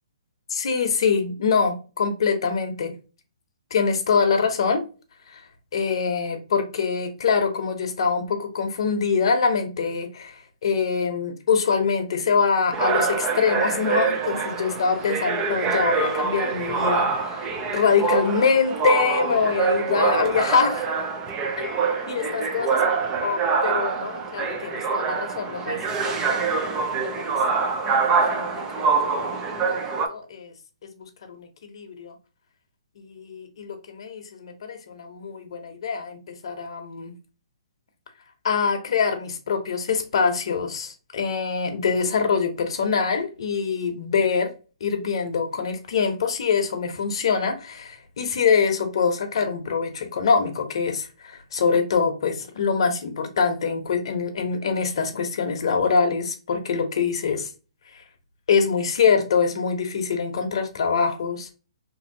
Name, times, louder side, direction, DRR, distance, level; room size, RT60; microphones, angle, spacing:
voice 1, 0.5-2.9 3.7-4.8 5.3-5.4 5.7-20.9 21.6-21.7 22.1-22.7 23.2-25.8 26.1-27.4 27.8-28.5 28.8-29.8 30.1-30.5 30.9-32.1 33.0-36.2 36.4-37.1 38.4-44.5 44.8-57.5 58.5-61.5, left 5 dB, 60° left, 0.8 m, -24 dB
sound 1, 12.7-30.1, right 5 dB, 20° right, 0.5 m, -25 dB
2.9 x 2.7 x 2.6 m
hypercardioid pair, 150°, 3 cm